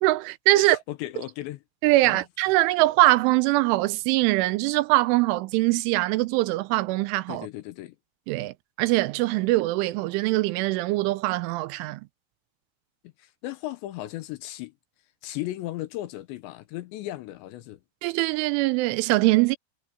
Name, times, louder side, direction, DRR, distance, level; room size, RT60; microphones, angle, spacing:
voice 1, 0.0-0.8 1.8-7.5 8.3-12.0 18.0-19.6, right 19 dB, 85° right, 3.1 m, -22 dB
voice 2, 0.5-1.6 2.0-2.2 7.3-8.0 13.2-14.7 15.2-17.8, left 15 dB, 80° left, 2.9 m, -36 dB
omnidirectional pair, 5.6 m